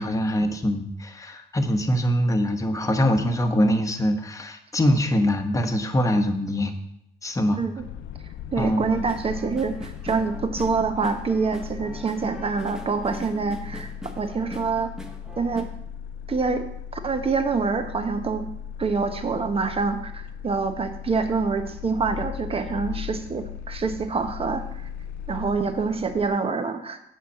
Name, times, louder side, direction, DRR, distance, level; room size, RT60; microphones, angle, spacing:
voice 1, 0.0-6.8 7.2-7.6 8.6-9.0 13.6-13.8, equal, 15° left, 5 dB, 1.2 m, -23 dB
voice 2, 7.5-7.8 8.5-14.9 15.4-15.7 16.3-16.7 16.9-18.5 18.8-24.9 25.3-27.0, right 4 dB, 30° right, 8 dB, 1.1 m, -26 dB
sound 1, 7.8-26.3, left 9 dB, 75° left, 0.6 m, -38 dB
sound 2, 8.9-15.6, left 1 dB, 5° right, 1.3 m, -42 dB
8.3 x 5.8 x 7.3 m, 0.75 s
cardioid pair, 115°, 19 cm